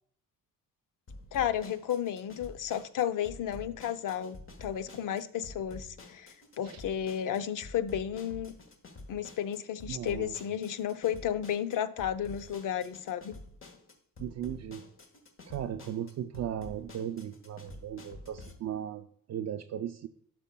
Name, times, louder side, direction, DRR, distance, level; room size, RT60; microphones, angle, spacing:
sound 1, 1.1-18.5, left 2 dB, 35° left, 1.3 m, -49 dB
voice 1, 1.3-6.3 6.6-8.5 9.1-13.4, left 10 dB, 60° left, 0.6 m, -33 dB
voice 2, 9.9-10.3 14.2-14.8 15.5-20.1, right 10 dB, 50° right, 0.4 m, -37 dB
12.5 x 5.2 x 2.2 m
cardioid pair, 130°, 35 cm